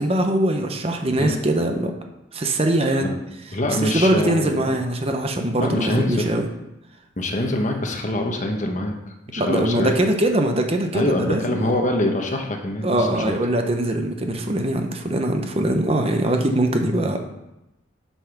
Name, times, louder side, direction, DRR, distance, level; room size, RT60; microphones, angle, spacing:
voice 1, 0.0-1.9 2.3-3.1 3.8-6.5 9.4-11.7 12.8-17.3, right 1 dB, 30° right, 4 dB, 0.8 m, -22 dB
voice 2, 3.5-4.7 5.6-6.3 7.2-10.0 10.9-13.3, left 1 dB, 40° left, 3 dB, 1.1 m, -24 dB
8.2 x 5.9 x 5.9 m, 0.93 s
head